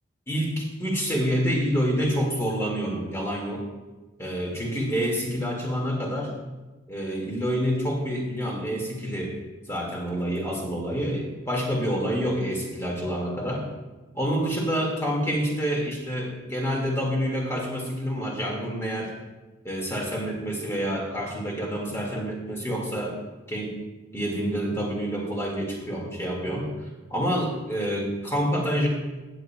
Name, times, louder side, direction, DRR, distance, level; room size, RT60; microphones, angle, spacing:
voice 1, 0.3-3.7 4.2-6.3 6.9-9.4 9.7-13.7 14.1-19.1 19.6-23.2 23.5-23.8 24.1-26.8 27.1-28.9, equal, 15° left, -1 dB, 1.9 m, -27 dB
15.5 x 9.0 x 2.3 m, 1.2 s
head